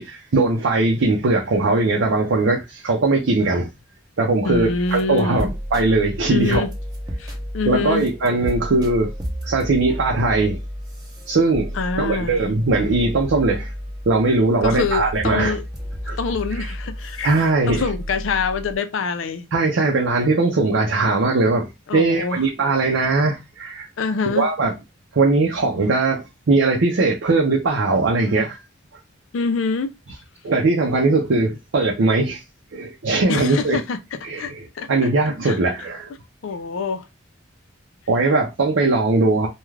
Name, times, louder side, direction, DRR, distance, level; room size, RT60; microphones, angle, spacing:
voice 1, 0.0-3.7 4.2-6.6 7.7-9.1 9.4-10.6 11.3-13.7 14.1-15.6 16.1-16.2 16.5-16.7 17.2-17.8 19.5-21.7 21.9-23.9 24.2-24.7 25.1-28.6 30.4-32.4 32.7-33.8 34.2-36.1 38.1-39.5, right 3 dB, 70° right, 0.5 m, -20 dB
voice 2, 4.4-5.5 6.3-6.7 7.2-8.1 11.7-12.4 14.6-15.7 16.2-19.5 21.9-22.4 24.0-24.5 29.3-29.9 33.3-34.0 34.4-34.9 35.4-35.6 36.4-37.1, left 4 dB, 75° left, 0.4 m, -25 dB
sound 1, 4.5-18.8, equal, 20° right, 0.6 m, -32 dB
2.3 x 2.3 x 3.2 m
head